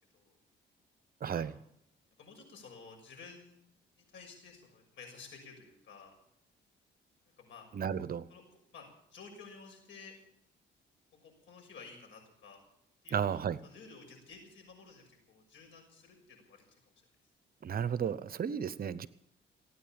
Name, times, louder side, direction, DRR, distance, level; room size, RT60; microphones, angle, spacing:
voice 1, 1.2-1.5 7.7-8.3 13.1-13.6 17.6-19.1, right 8 dB, 50° right, 16 dB, 0.8 m, -33 dB
voice 2, 2.2-3.6 4.0-6.1 7.4-7.7 8.3-8.4 8.7-10.1 11.2-12.6 13.0-16.8, left 4 dB, 70° left, 2 dB, 6.3 m, -53 dB
17.0 x 9.4 x 8.9 m, 0.73 s
cardioid pair, 90°, 20 cm